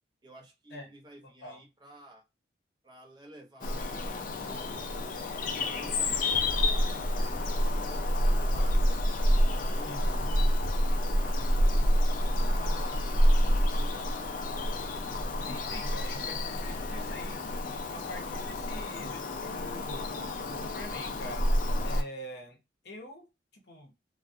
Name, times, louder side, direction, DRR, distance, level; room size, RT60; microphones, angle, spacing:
voice 1, 0.2-2.2 2.8-4.2 4.8-8.8 9.5-10.3 11.1-13.3 13.6-14.7, right 1 dB, 25° right, 0 dB, 0.7 m, -53 dB
Bird vocalization bird call bird song, 3.6-22.0, equal, 50° left, 0.4 m, -28 dB
voice 2, 15.4-20.1 20.5-21.4 21.8-22.6 22.8-23.3 23.5-23.9, left 1 dB, 70° left, 3 dB, 0.7 m, -45 dB
2.3 x 2.1 x 2.5 m, 0.25 s
head